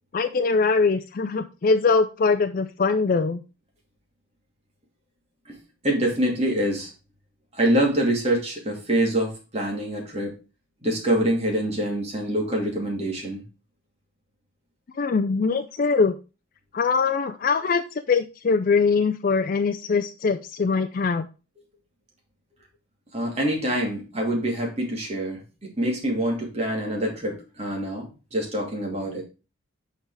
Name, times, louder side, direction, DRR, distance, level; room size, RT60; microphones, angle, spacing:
voice 1, 0.1-3.4 14.9-16.2 16.7-17.8 18.1-21.3, left 4 dB, 45° left, 8 dB, 0.4 m, -22 dB
voice 2, 5.8-6.9 7.5-10.4 10.8-13.4 23.1-29.2, right 1 dB, 30° right, -1 dB, 2.6 m, -25 dB
6.7 x 4.7 x 4.8 m, 0.31 s
head